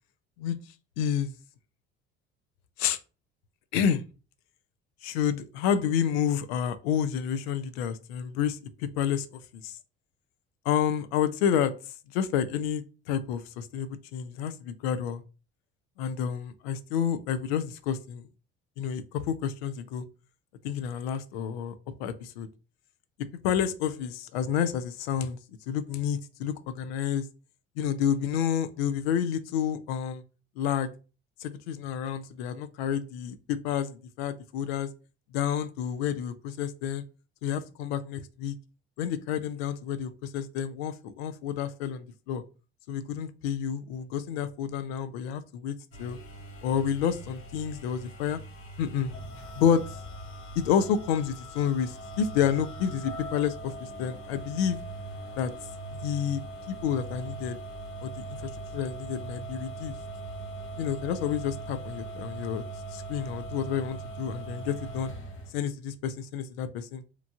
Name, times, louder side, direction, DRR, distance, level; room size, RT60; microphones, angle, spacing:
voice 1, 1.0-1.3 2.8-3.0 3.7-4.0 5.0-9.8 10.7-11.7 12.1-15.2 16.0-18.3 18.8-20.0 20.6-21.7 22.0-22.5 23.4-25.4 25.7-27.3 27.8-30.2 30.6-30.9 31.4-34.9 35.3-37.0 37.4-38.5 39.0-42.4 42.9-46.2 46.6-48.4 48.8-49.1 49.6-49.8 50.6-53.7 54.0-54.8 55.4-55.5 56.0-56.4 56.8-57.6 58.0-59.9 60.8-62.6 62.9-65.1 65.5-67.0, left 8 dB, 75° left, 0.5 m, -29 dB
sound 1, 45.9-65.5, right 2 dB, 45° left, 0.9 m, -41 dB
3.0 x 2.4 x 2.3 m
hypercardioid pair, 60°, 31 cm